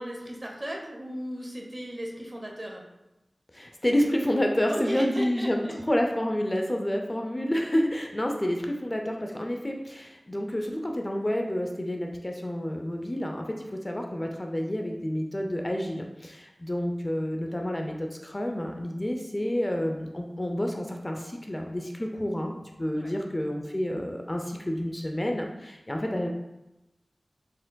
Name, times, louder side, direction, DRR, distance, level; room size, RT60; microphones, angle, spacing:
voice 1, 0.0-2.8 4.6-5.7 23.0-23.2, equal, 30° right, 0 dB, 0.8 m, -36 dB
voice 2, 3.5-26.3, equal, 30° left, 2 dB, 0.4 m, -29 dB
4.4 x 3.6 x 2.2 m, 0.95 s
wide cardioid pair, 40°, 0 cm